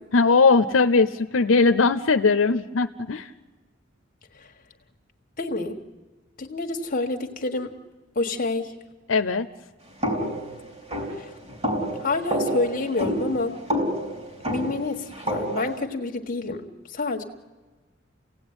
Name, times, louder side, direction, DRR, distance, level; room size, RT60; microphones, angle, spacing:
voice 1, 0.1-3.3 9.1-9.5, left 4 dB, 80° left, 9 dB, 0.7 m, -19 dB
voice 2, 5.4-5.8 6.4-7.7 8.1-8.7 11.1-11.3 12.0-13.5 14.5-17.2, left 2 dB, 45° left, 3 dB, 1.6 m, -28 dB
sound 1, 10.0-15.8, equal, 35° right, 4.2 m, -29 dB
29.5 x 17.0 x 9.7 m, 1.3 s
head